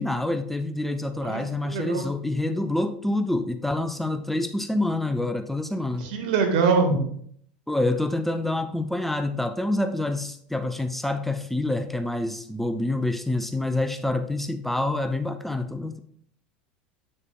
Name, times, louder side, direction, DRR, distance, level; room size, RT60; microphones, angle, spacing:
voice 1, 0.0-6.1 7.7-16.0, left 2 dB, 5° left, 8 dB, 0.5 m, -27 dB
voice 2, 1.7-2.0 6.0-7.0, right 4 dB, 65° right, 3 dB, 1.6 m, -23 dB
8.6 x 6.5 x 2.3 m, 0.63 s
hypercardioid pair, 80°, 5 cm